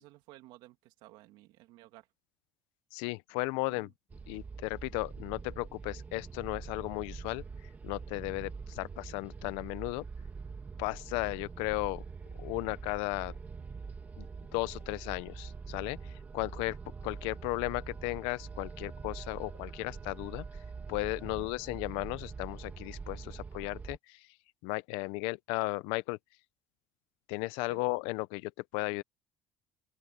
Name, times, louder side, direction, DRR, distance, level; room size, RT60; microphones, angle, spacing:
voice 1, 0.0-2.1 3.7-3.9 21.4-21.5 27.7-27.8, right 17 dB, 65° right, 2.8 m, -55 dB
voice 2, 2.9-3.9 4.3-7.4 7.8-10.0 10.8-12.0 12.4-13.3 14.2-14.3 14.5-16.8 17.0-20.4 20.9-24.3 24.6-26.2 27.3-29.0, left 22 dB, 90° left, 0.8 m, -35 dB
sound 1, 4.1-24.0, right 5 dB, 20° right, 1.9 m, -44 dB
open air
cardioid pair, 170°, 9 cm